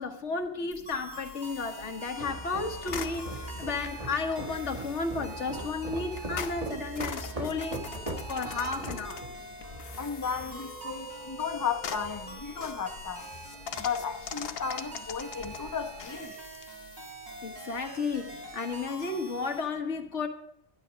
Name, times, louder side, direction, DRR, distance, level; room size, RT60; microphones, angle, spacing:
voice 1, 0.0-7.8 8.3-9.2 10.8-10.9 17.4-20.3, left 4 dB, 90° left, 1.6 m, -33 dB
sound 1, 0.7-18.9, left 7 dB, 60° left, 0.9 m, -44 dB
sound 2, 0.9-19.6, right 1 dB, 65° right, 3.7 m, -45 dB
sound 3, 2.2-16.2, right 1 dB, 30° right, 1.6 m, -42 dB
voice 2, 10.0-13.3 13.8-16.3, left 6 dB, 20° left, 0.7 m, -34 dB
12.5 x 10.0 x 5.1 m
omnidirectional pair, 1.2 m